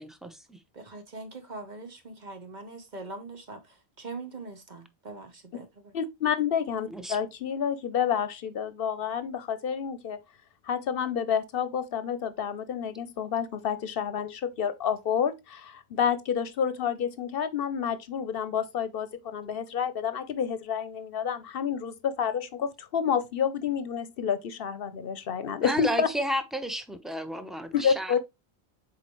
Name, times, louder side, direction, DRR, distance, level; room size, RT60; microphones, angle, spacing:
voice 1, 0.9-5.9, right 3 dB, 45° right, 1.2 m, -42 dB
voice 2, 5.9-10.2 10.7-26.1 27.7-28.2, left 7 dB, 65° left, 0.8 m, -29 dB
voice 3, 25.6-28.2, equal, ahead, 0.7 m, -32 dB
7.5 x 4.2 x 3.0 m
omnidirectional pair, 1.0 m